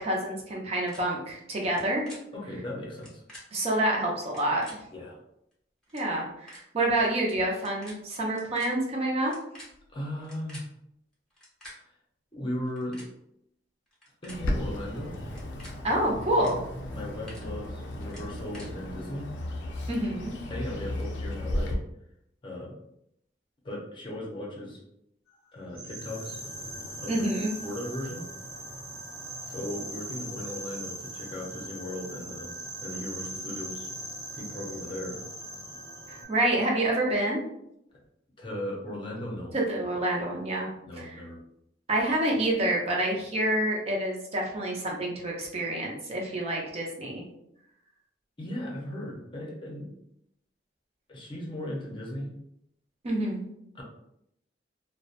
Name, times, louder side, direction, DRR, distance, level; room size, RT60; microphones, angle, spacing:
voice 1, 0.0-2.1 3.5-4.6 5.9-9.3 15.8-16.6 19.9-20.3 27.1-27.5 36.1-37.4 39.5-40.7 41.0-41.2 41.9-47.2 53.0-53.5, right 1 dB, 35° right, -1 dB, 0.5 m, -27 dB
sound 1, 0.9-1.0 1.6-2.2 2.9-3.4 4.2-4.7 5.5-5.6 5.8-6.0 6.5-6.6 7.5-7.9 8.2-8.7 9.2-10.6 11.3-11.7 12.6-13.1 13.9-14.4 15.3-15.7 16.3-16.5 16.9-17.4 18.1-18.7, left 1 dB, 5° left, 0.9 m, -48 dB
voice 2, 2.3-3.2 4.9-5.2 9.9-10.6 12.3-13.1 14.2-15.2 16.9-19.3 20.5-21.8 22.4-22.8 23.6-24.8 25.5-26.4 27.0-27.3 27.6-28.3 29.4-33.9 34.3-35.2 38.4-39.6 40.8-41.4 48.4-49.9 51.1-52.4 53.7-53.8, left 1 dB, 30° left, -2 dB, 0.6 m, -37 dB
Bird, 14.3-21.7, left 1 dB, 75° left, 0.4 m, -35 dB
sound 2, 25.7-36.3, right 1 dB, 80° right, 1.1 m, -40 dB
2.7 x 2.1 x 2.4 m, 0.76 s
head